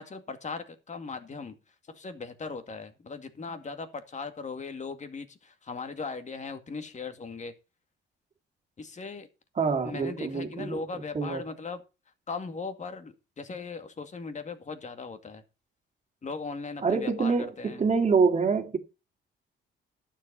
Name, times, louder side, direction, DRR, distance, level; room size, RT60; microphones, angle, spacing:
voice 1, 0.0-1.5 1.9-7.5 8.8-9.3 9.8-11.8 12.3-15.4 16.2-17.9, left 4 dB, 35° left, 2.1 m, -38 dB
voice 2, 9.6-10.8 11.1-11.4 16.8-18.8, right 5 dB, 35° right, 2.2 m, -26 dB
11.5 x 7.6 x 5.5 m
cardioid pair, 90°, 20 cm